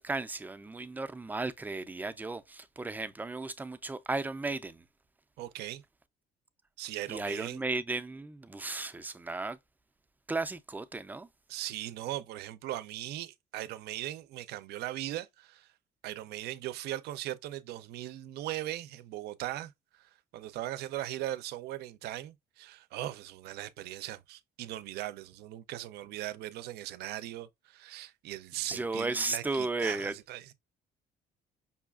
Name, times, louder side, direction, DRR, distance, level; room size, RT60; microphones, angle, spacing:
voice 1, 0.0-4.8 7.1-9.6 10.3-11.3 28.7-30.1, right 3 dB, 10° right, 0.3 m, -35 dB
voice 2, 5.4-5.8 6.8-7.6 11.5-15.7 16.0-30.5, right 14 dB, 75° right, 0.4 m, -39 dB
5.4 x 2.3 x 2.3 m
cardioid pair, 110°, 17 cm